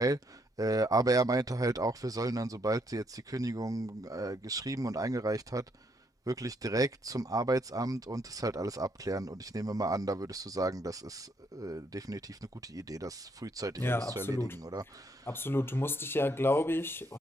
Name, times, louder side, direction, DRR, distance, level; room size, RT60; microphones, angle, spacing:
voice 1, 0.0-5.6 6.3-15.3, right 2 dB, 15° right, 0.9 m, -33 dB
voice 2, 13.8-14.6 15.3-17.2, left 1 dB, 10° left, 0.9 m, -30 dB
head